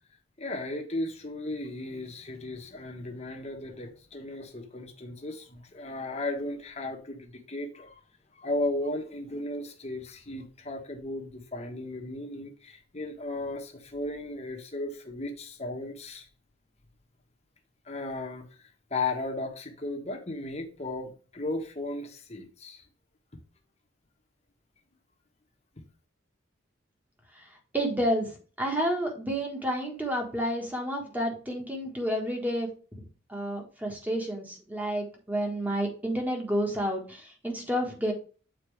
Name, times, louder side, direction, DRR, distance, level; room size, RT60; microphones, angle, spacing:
voice 1, 0.4-8.0 8.3-16.3 17.8-18.5 18.9-22.8, left 2 dB, 30° left, 1.2 m, -35 dB
voice 2, 27.3-32.7 33.0-38.1, equal, 10° right, 1.5 m, -30 dB
7.7 x 4.4 x 3.3 m
head